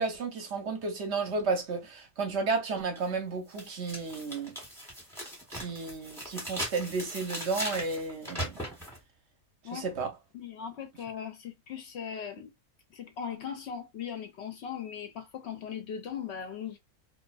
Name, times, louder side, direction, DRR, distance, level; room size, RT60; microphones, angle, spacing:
voice 1, 0.0-4.5 5.5-8.6 9.7-10.1, right 4 dB, 60° right, 0.8 m, -32 dB
sound 1, 3.0-3.1 3.5-9.0, equal, ahead, 0.9 m, -39 dB
voice 2, 10.3-12.5 12.9-16.8, left 8 dB, 65° left, 0.7 m, -39 dB
2.4 x 2.2 x 2.3 m
omnidirectional pair, 1.5 m